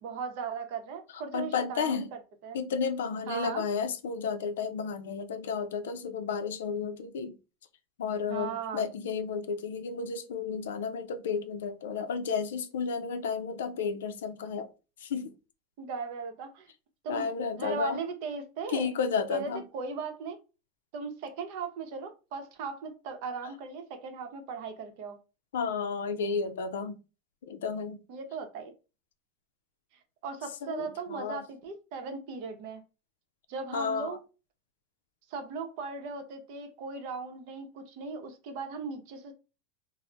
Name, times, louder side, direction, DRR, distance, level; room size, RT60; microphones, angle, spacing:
voice 1, 0.0-2.1 2.4-2.6 3.3-3.6 8.3-8.8 15.8-16.7 17.0-17.3 17.6-18.9 19.3-20.4 20.9-25.2 28.1-28.7 30.2-32.8 33.5-34.2 35.3-39.3, right 5 dB, 65° right, 0.7 m, -38 dB
voice 2, 1.1-2.1 2.5-7.4 8.0-14.7 15.0-15.3 17.1-18.0 18.7-19.6 25.5-27.0 27.5-28.0 30.6-31.4 33.7-34.2, left 5 dB, 90° left, 0.4 m, -32 dB
2.2 x 2.0 x 3.8 m
supercardioid pair, 120°, 0 cm